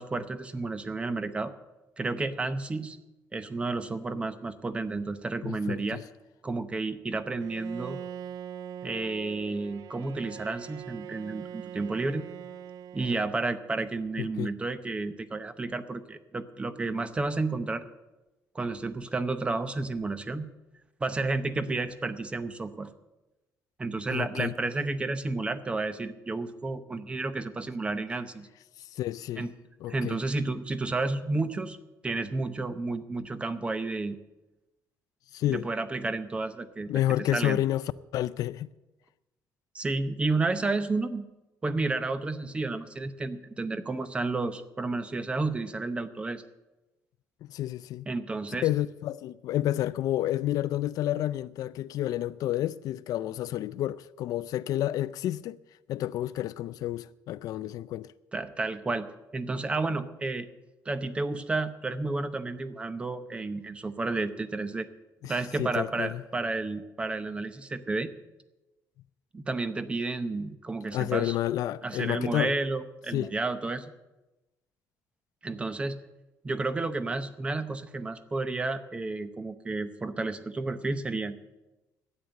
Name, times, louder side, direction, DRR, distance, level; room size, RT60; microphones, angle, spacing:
voice 1, 0.0-1.5 2.0-3.0 3.3-6.0 6.4-8.0 8.8-12.3 12.9-17.9 18.5-20.5 21.0-22.9 23.8-28.5 29.4-29.5 29.9-31.8 32.0-34.2 35.5-36.9 37.3-37.6 39.7-41.2 41.6-46.4 48.1-48.7 58.3-59.1 59.3-60.5 60.9-64.9 65.3-68.1 69.3-71.3 71.8-73.9 75.4-76.0 76.4-81.3, right 3 dB, 15° right, 0.8 m, -31 dB
voice 2, 5.4-6.0 14.2-14.5 24.1-24.5 28.8-29.5 29.8-30.2 35.3-35.7 36.9-38.7 47.4-48.1 48.6-55.6 55.9-58.1 65.2-66.2 70.9-72.5 73.1-73.3, left 13 dB, 70° left, 0.4 m, -30 dB
Bowed string instrument, 7.4-13.7, right 9 dB, 70° right, 0.4 m, -42 dB
12.5 x 8.8 x 7.7 m
cardioid pair, 155°, 6 cm